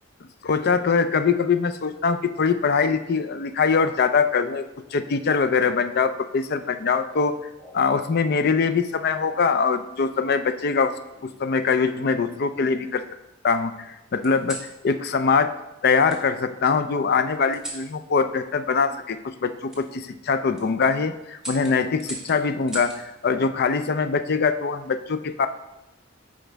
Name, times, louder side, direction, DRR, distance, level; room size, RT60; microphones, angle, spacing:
voice 1, 0.4-4.7 4.9-7.4 7.7-10.9 11.2-13.0 13.4-15.6 15.8-25.5, left 5 dB, 55° left, 11 dB, 0.4 m, -23 dB
sound 1, 6.9-8.0 9.0-9.4 10.7-11.5 12.1-13.0 14.2-14.7 16.1-16.2 17.5-17.9 19.7-19.8 20.4-20.7 21.4-23.0 24.5-24.9, right 1 dB, 5° right, 1.5 m, -41 dB
8.9 x 5.1 x 3.4 m, 0.95 s
head